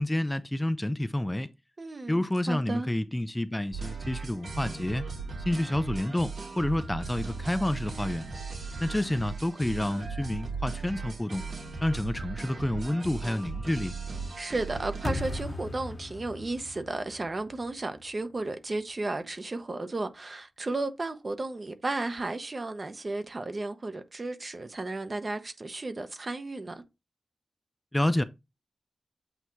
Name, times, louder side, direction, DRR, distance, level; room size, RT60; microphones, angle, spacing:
voice 1, 0.0-1.5 2.1-5.1 5.4-8.3 8.8-11.4 11.8-13.9 27.9-28.2, left 1 dB, 10° left, 0.4 m, -29 dB
voice 2, 1.8-2.2 2.5-2.9 14.4-26.8, right 2 dB, 40° right, 0.9 m, -34 dB
sound 1, 3.7-15.4, right 4 dB, 85° right, 2.0 m, -38 dB
sound 2, 15.0-18.1, left 2 dB, 40° left, 0.9 m, -37 dB
8.1 x 2.9 x 4.5 m
wide cardioid pair, 125°, 0 cm